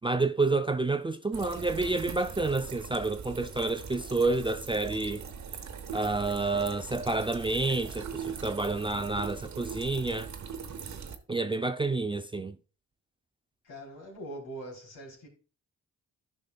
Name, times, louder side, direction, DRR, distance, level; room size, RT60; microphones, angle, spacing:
voice 1, 0.0-5.2 5.9-10.3 11.3-12.6, right 3 dB, 15° right, 0.4 m, -29 dB
sound 1, 1.3-11.2, right 6 dB, 50° right, 0.9 m, -41 dB
voice 2, 13.6-15.3, right 1 dB, 75° left, 3.3 m, -42 dB
12.0 x 5.3 x 2.3 m
supercardioid pair, 55°, 36 cm